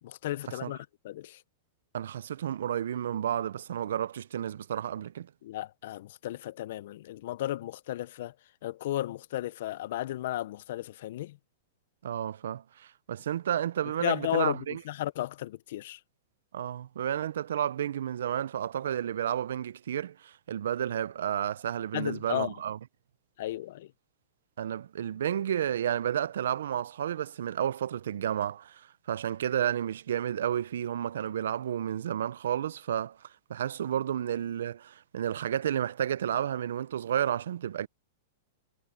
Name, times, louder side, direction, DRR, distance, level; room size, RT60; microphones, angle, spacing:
voice 1, 0.0-1.4 5.4-8.3 8.6-11.4 14.0-16.0 21.9-22.6 23.4-23.9, left 14 dB, 50° left, 0.4 m, -34 dB
voice 2, 1.9-5.3 12.0-14.8 16.5-22.8 24.6-37.9, right 10 dB, 80° right, 0.4 m, -31 dB
supercardioid pair, 175°, 0 cm